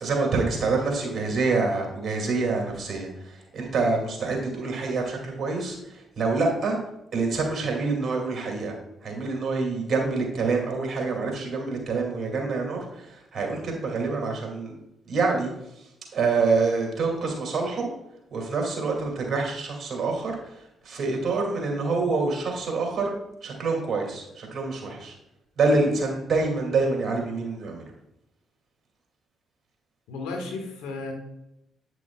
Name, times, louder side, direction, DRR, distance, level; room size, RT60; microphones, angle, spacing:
voice 1, 0.0-6.8 7.1-8.8 9.0-14.8 15.1-15.5 16.1-17.9 18.3-23.1 23.4-25.1 25.6-27.8, right 3 dB, 55° right, 0 dB, 2.3 m, -26 dB
voice 2, 30.1-31.1, left 3 dB, 90° left, 3 dB, 1.3 m, -33 dB
9.0 x 6.2 x 2.3 m, 0.85 s
supercardioid pair, 55°, 0 cm